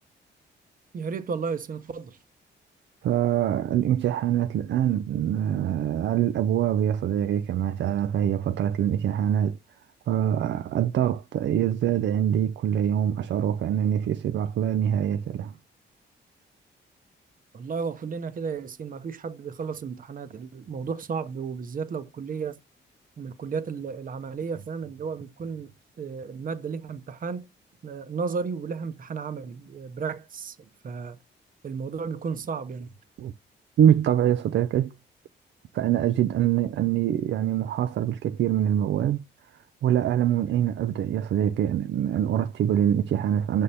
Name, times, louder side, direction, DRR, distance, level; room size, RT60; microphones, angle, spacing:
voice 1, 0.9-2.2 17.5-22.6 23.2-27.5 27.8-31.2 31.6-32.9, right 5 dB, 45° right, 0.8 m, -33 dB
voice 2, 3.0-9.6 10.1-15.5 33.2-33.3 33.8-34.9 35.7-39.2 39.8-43.6, right 10 dB, 70° right, 0.5 m, -24 dB
6.4 x 3.5 x 4.2 m
cardioid pair, 115°, 19 cm